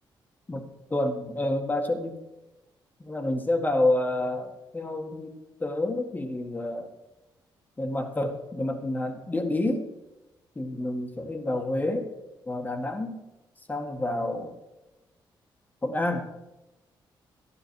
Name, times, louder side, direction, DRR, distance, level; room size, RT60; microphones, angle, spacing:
voice 1, 0.9-2.2 3.0-6.9 7.8-9.9 10.6-12.1 12.5-13.2 13.7-14.6 15.8-16.3, left 1 dB, 20° left, 4 dB, 1.9 m, -29 dB
13.5 x 11.5 x 4.8 m, 1.0 s
cardioid pair, 100°, 8 cm